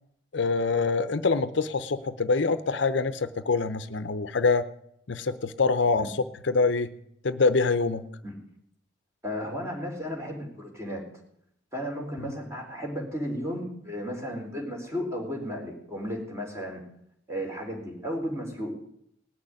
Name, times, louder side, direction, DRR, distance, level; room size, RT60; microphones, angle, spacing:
voice 1, 0.3-4.7 5.1-6.1 6.4-6.9 7.2-8.1 12.2-12.3, left 4 dB, 65° left, 12 dB, 0.7 m, -25 dB
voice 2, 9.2-11.1 11.7-16.8 17.3-18.7, equal, 15° right, 0 dB, 3.9 m, -34 dB
18.5 x 6.6 x 10.0 m, 0.72 s
head